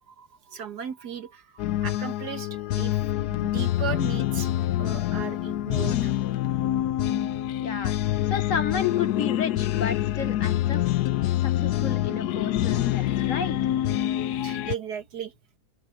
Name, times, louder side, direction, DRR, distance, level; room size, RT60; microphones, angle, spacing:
voice 1, 0.0-3.0 3.3-4.5 4.8-6.1 14.4-15.3, right 8 dB, 85° right, 2.0 m, -36 dB
sound 1, 1.6-14.8, left 13 dB, 85° left, 1.2 m, -26 dB
voice 2, 7.6-8.0 8.3-10.8 11.4-13.6, left 5 dB, 55° left, 1.7 m, -32 dB
open air
omnidirectional pair, 1.7 m